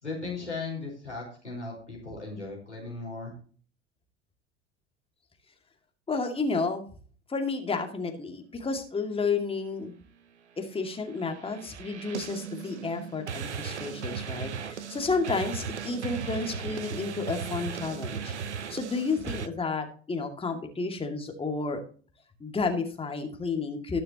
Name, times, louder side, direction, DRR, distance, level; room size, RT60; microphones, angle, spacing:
voice 1, 0.0-3.3, left 3 dB, 90° left, -2 dB, 4.8 m, -37 dB
voice 2, 6.1-6.9 7.3-9.9 10.6-18.3 18.7-21.8 22.4-24.0, left 4 dB, 15° left, 4 dB, 2.3 m, -31 dB
sound 1, 11.1-19.5, right 6 dB, 75° right, 0.8 m, -37 dB
19.5 x 6.7 x 3.0 m, 0.42 s
figure-of-eight pair, 75°, 34 cm